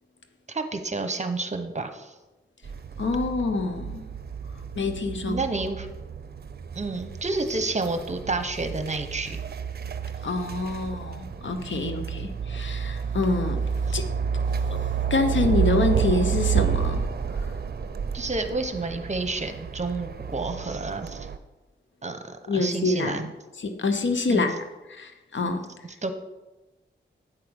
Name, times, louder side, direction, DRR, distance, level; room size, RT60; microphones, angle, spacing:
voice 1, 0.5-2.1 5.3-5.9 6.7-9.4 11.8-12.1 18.1-21.3 22.0-23.3 24.3-24.5 26.0-26.1, right 3 dB, 35° right, 8 dB, 0.9 m, -30 dB
sound 1, 2.6-21.4, right 7 dB, 55° right, 0.6 m, -30 dB
voice 2, 3.0-4.1 4.7-5.4 10.2-14.0 14.7-17.5 22.5-23.2 23.6-25.7, left 3 dB, 70° left, 7 dB, 0.9 m, -27 dB
9.1 x 4.8 x 6.3 m, 1.1 s
cardioid pair, 60°, 20 cm